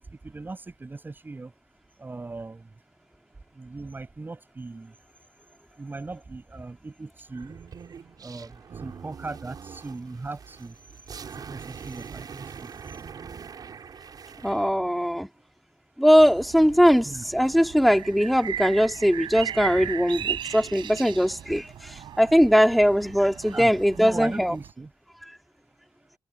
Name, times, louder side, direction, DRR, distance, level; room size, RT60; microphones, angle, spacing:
voice 1, 0.0-1.5 2.0-2.7 3.5-5.0 5.7-7.6 8.2-10.8 11.4-12.8 15.3-15.5 17.0-17.2 23.5-23.7 24.0-24.9, right 3 dB, 25° right, 7.4 m, -38 dB
sound 1, 7.3-14.7, right 6 dB, 55° right, 6.8 m, -43 dB
voice 2, 14.4-15.3 16.0-24.5 25.3-25.4, equal, ahead, 3.1 m, -20 dB
sound 2, 16.2-24.7, right 10 dB, 85° right, 5.9 m, -37 dB
cardioid pair, 95°, 8 cm